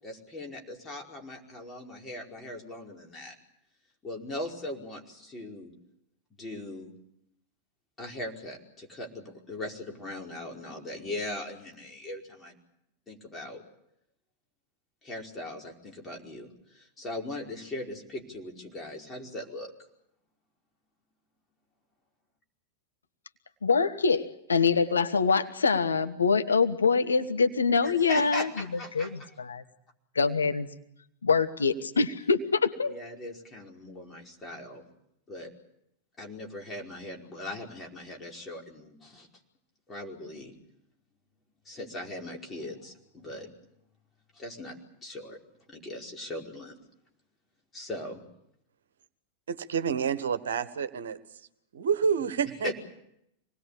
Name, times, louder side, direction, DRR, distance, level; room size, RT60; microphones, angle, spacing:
voice 1, 0.0-3.3 4.0-5.7 6.4-6.9 8.0-12.6 13.1-13.6 15.0-19.7 27.8-29.3 32.8-34.8 35.3-35.5 36.2-39.3 39.9-40.5 41.6-43.5 44.3-44.7 45.0-45.4 45.7-46.8 47.7-48.2 52.6-52.7, left 1 dB, 20° left, 0 dB, 5.1 m, -39 dB
voice 2, 23.6-28.6 28.9-29.6 30.1-30.7 31.2-32.9, left 5 dB, 75° left, 8 dB, 1.3 m, -25 dB
voice 3, 49.5-51.2 51.7-52.7, right 6 dB, 65° right, 12 dB, 1.4 m, -28 dB
26.0 x 20.0 x 8.6 m, 0.79 s
figure-of-eight pair, 90°, 0 cm